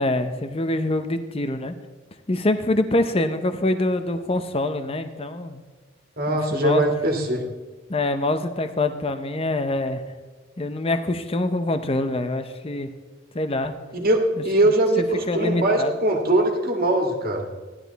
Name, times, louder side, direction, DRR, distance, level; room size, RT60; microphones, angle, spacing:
voice 1, 0.0-1.7 2.3-5.6 6.3-6.8 7.9-10.0 10.6-12.9 13.3-13.7 15.3-16.0, left 2 dB, 25° left, 9 dB, 0.7 m, -25 dB
voice 2, 6.2-7.4 13.9-14.2 14.4-17.5, right 1 dB, 45° right, 2 dB, 2.0 m, -21 dB
15.5 x 11.5 x 4.0 m, 1.3 s
head